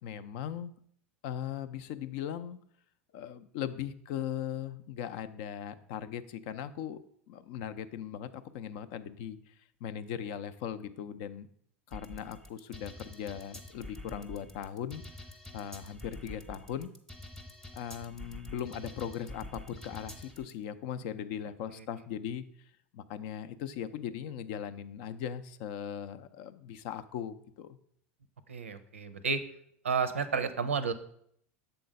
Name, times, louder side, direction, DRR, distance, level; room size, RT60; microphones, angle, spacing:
voice 1, 0.0-0.7 1.2-2.6 3.1-7.0 7.3-9.5 9.8-11.5 11.9-15.3 15.5-16.9 17.7-22.4 22.9-27.8, left 9 dB, 60° left, 13 dB, 0.5 m, -39 dB
sound 1, 11.9-20.5, left 1 dB, 10° left, 0.8 m, -47 dB
voice 2, 28.5-29.4 29.8-30.9, right 5 dB, 85° right, 11 dB, 0.6 m, -31 dB
6.9 x 3.8 x 5.2 m, 0.66 s
hypercardioid pair, 85°, 7 cm